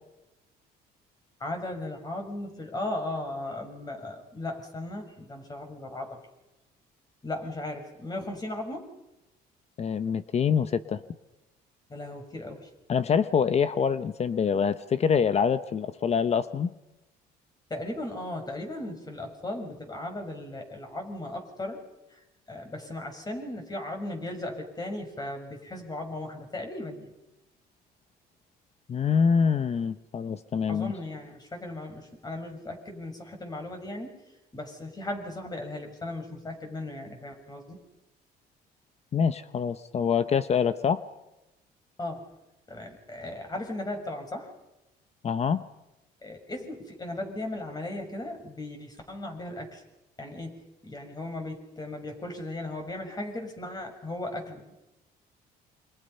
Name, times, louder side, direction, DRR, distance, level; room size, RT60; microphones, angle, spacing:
voice 1, 1.4-6.2 7.2-8.9 11.9-12.7 17.7-21.8 22.1-27.1 30.7-34.2 34.5-37.8 42.0-42.3 42.7-44.5 46.2-49.8 50.2-54.7, left 1 dB, 25° left, 4 dB, 6.2 m, -37 dB
voice 2, 9.8-11.0 12.9-16.7 28.9-30.9 39.1-41.0 45.2-45.6, left 6 dB, 40° left, 13 dB, 0.9 m, -25 dB
29.0 x 25.5 x 5.7 m, 0.95 s
cardioid pair, 110°, 17 cm